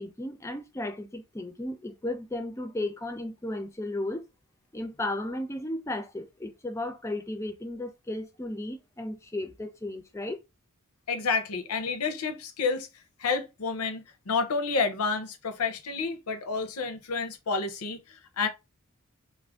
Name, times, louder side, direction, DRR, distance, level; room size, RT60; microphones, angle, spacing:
voice 1, 0.0-4.2 4.7-10.4, left 1 dB, 15° left, 0.3 m, -34 dB
voice 2, 11.1-12.9 13.2-18.5, left 4 dB, 90° left, 0.6 m, -30 dB
2.4 x 2.1 x 3.3 m
head